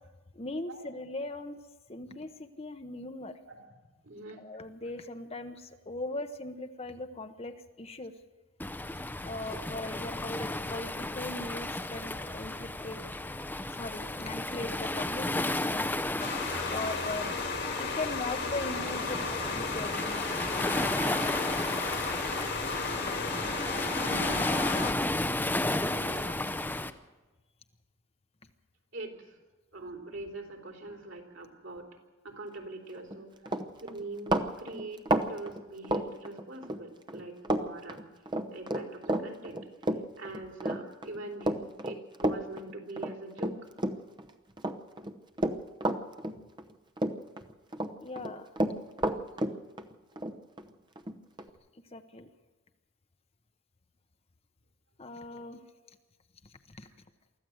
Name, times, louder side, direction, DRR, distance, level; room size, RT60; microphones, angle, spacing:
voice 1, 0.3-1.6 1.9-3.3 4.3-8.1 9.2-13.0 13.7-15.9 16.7-17.4 17.8-20.7 48.0-48.5 51.9-52.3 55.0-55.6 56.4-56.9, left 2 dB, 30° left, 7 dB, 0.9 m, -39 dB
voice 2, 4.0-4.4 9.4-9.6 24.1-24.5 24.8-26.4 28.9-29.4 29.7-31.9 32.2-35.0 35.3-38.1 38.5-39.7 40.2-43.7, right 2 dB, 60° right, 3 dB, 3.6 m, -43 dB
Waves surf, 8.6-26.9, left 1 dB, 10° left, 0.6 m, -33 dB
sound 1, 16.2-24.9, left 4 dB, 50° left, 1.9 m, -34 dB
Run, 33.0-33.2 33.5-36.8 37.1-37.6 37.9-44.2 44.6-46.7 47.0-47.9 48.2-51.5, right 1 dB, 20° right, 0.8 m, -31 dB
24.0 x 14.5 x 7.9 m, 1.2 s
head